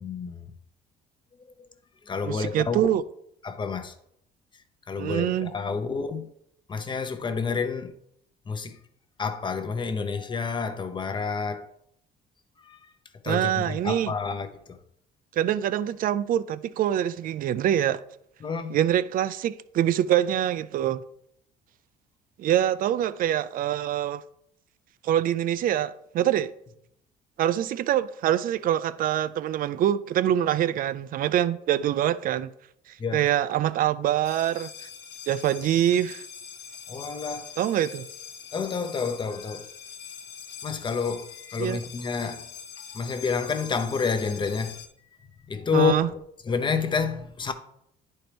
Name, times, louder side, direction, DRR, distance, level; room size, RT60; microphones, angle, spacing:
voice 1, 0.0-0.4 2.1-3.0 3.4-3.9 4.9-6.3 6.7-7.9 8.5-8.8 9.2-11.7 12.6-12.8 13.2-14.8 18.4-18.8 33.0-33.3 36.9-37.5 38.5-39.7 40.6-42.5 42.9-44.8 45.5-46.2 46.4-47.5, left 5 dB, 30° left, 0.7 m, -29 dB
voice 2, 2.2-3.0 5.0-5.5 13.3-14.1 15.4-18.0 18.7-21.0 22.4-24.2 25.0-26.5 27.4-32.5 33.1-34.7 35.3-36.2 37.6-38.0 41.6-41.8 45.7-46.1, right 11 dB, 55° right, 0.4 m, -25 dB
sound 1, 34.2-44.9, left 8 dB, 75° left, 1.2 m, -43 dB
10.0 x 4.3 x 3.4 m
cardioid pair, 110°, 17 cm